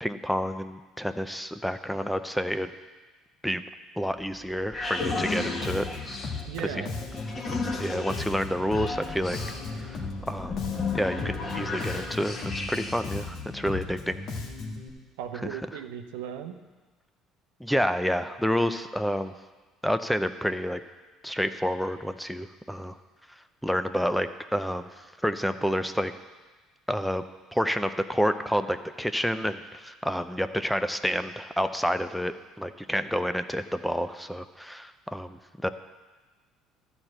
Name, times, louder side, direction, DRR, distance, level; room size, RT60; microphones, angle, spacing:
voice 1, 0.0-2.7 3.4-3.6 4.0-5.9 6.2-6.3 7.8-9.4 9.8-10.0 10.3-10.6 10.9-14.2 17.6-19.3 19.8-20.8 21.2-22.9 23.6-24.9 25.2-26.1 26.9-27.2 27.5-35.7, equal, ahead, 10 dB, 0.6 m, -29 dB
sound 1, 4.3-13.2, left 3 dB, 35° left, 1.6 m, -34 dB
Bass guitar, 5.0-14.9, left 4 dB, 60° left, 1.5 m, -37 dB
voice 2, 6.5-7.0 15.2-16.6, right 9 dB, 75° right, 6 dB, 0.7 m, -36 dB
12.5 x 4.4 x 7.8 m, 1.3 s
hypercardioid pair, 60°, 0 cm